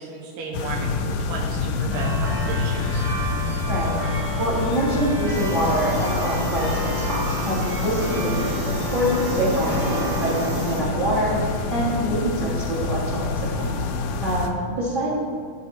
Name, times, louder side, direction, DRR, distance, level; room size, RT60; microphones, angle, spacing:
voice 1, 0.0-3.0, right 3 dB, 90° right, -1 dB, 2.4 m, -34 dB
sound 1, 0.5-14.5, left 4 dB, 80° left, 2.0 m, -27 dB
sound 2, 1.9-12.9, right 3 dB, 45° right, 1.1 m, -34 dB
voice 2, 3.7-11.3 11.7-13.8 14.2-15.1, equal, 25° right, -7 dB, 1.2 m, -25 dB
sound 3, 5.3-10.8, right 2 dB, 65° right, 3.0 m, -32 dB
12.0 x 4.1 x 4.3 m, 2.3 s
omnidirectional pair, 3.7 m